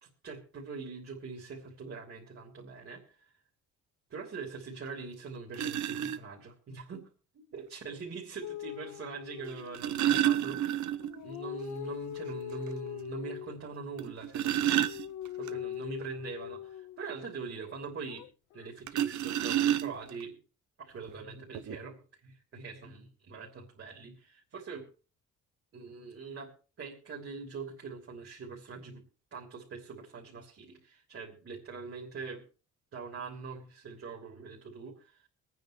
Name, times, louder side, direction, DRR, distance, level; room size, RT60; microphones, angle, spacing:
voice 1, 0.0-3.3 4.1-11.0 11.2-15.0 15.4-18.3 18.5-20.4 20.8-24.9 25.7-26.5 26.8-29.1 29.3-32.5 32.9-35.2, right 4 dB, 45° right, -2 dB, 3.2 m, -43 dB
sound 1, 4.9-5.0 5.5-6.2 7.6-7.7 9.5-11.2 11.5-11.6 12.1-12.2 12.7-12.8 14.0-15.5 18.9-20.2 21.1-21.2 21.5-21.8, right 11 dB, 70° right, 0.8 m, -29 dB
sound 2, 8.4-10.1 10.9-13.6 14.4-17.0 18.1-18.7, left 12 dB, 75° left, 0.6 m, -42 dB
23.5 x 9.3 x 3.2 m, 0.35 s
cardioid pair, 90°, 30 cm